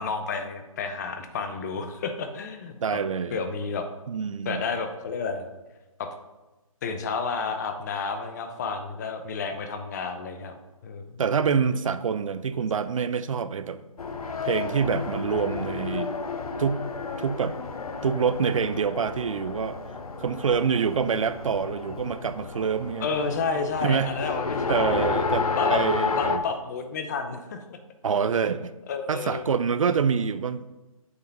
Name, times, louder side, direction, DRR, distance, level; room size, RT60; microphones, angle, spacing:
voice 1, 0.0-3.0 3.3-3.9 4.5-5.4 6.0-6.1 6.8-10.5 10.8-11.1 23.0-25.0 25.6-25.8 26.2-27.8 28.9-29.5, left 5 dB, 30° left, 7 dB, 0.8 m, -30 dB
voice 2, 2.8-3.4 4.1-4.6 11.2-13.8 14.4-16.1 16.6-16.8 17.2-17.6 18.0-19.8 20.2-23.1 23.8-24.2 24.7-26.4 28.0-28.7 29.1-30.6, right 6 dB, 65° right, 13 dB, 0.6 m, -26 dB
Race car auto racing, 14.0-26.4, left 4 dB, 80° left, 1.0 m, -31 dB
8.0 x 5.6 x 5.3 m, 1.1 s
hypercardioid pair, 155°, 19 cm